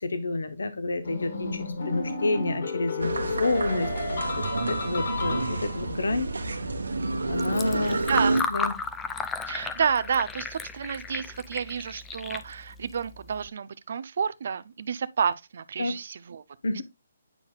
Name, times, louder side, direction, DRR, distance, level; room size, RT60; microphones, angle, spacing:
voice 1, 0.0-3.9 4.4-6.3 7.3-8.0 8.5-8.7 15.8-15.9 16.6-16.8, left 2 dB, 85° left, 1.0 m, -29 dB
sound 1, 1.0-6.0, left 4 dB, 65° left, 2.3 m, -32 dB
raw recital applause decent, 3.0-8.4, right 2 dB, 90° right, 1.1 m, -29 dB
Fill (with liquid), 7.3-13.5, left 5 dB, 10° left, 0.4 m, -35 dB
voice 2, 7.8-8.4 9.5-16.4, right 6 dB, 60° right, 0.5 m, -30 dB
9.0 x 5.5 x 2.3 m
hypercardioid pair, 155°, 0 cm